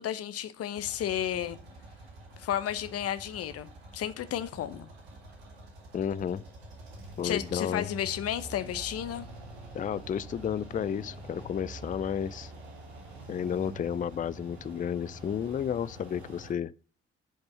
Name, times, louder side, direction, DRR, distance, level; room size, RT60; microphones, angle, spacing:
voice 1, 0.0-1.6 2.4-4.9 7.2-9.3, left 10 dB, 50° left, 0.8 m, -32 dB
sound 1, 0.7-16.5, right 2 dB, 85° right, 2.0 m, -46 dB
voice 2, 5.9-6.4 7.2-7.9 9.7-12.5 13.3-16.7, left 8 dB, 25° left, 0.4 m, -32 dB
9.8 x 5.3 x 5.3 m
hypercardioid pair, 45°, 31 cm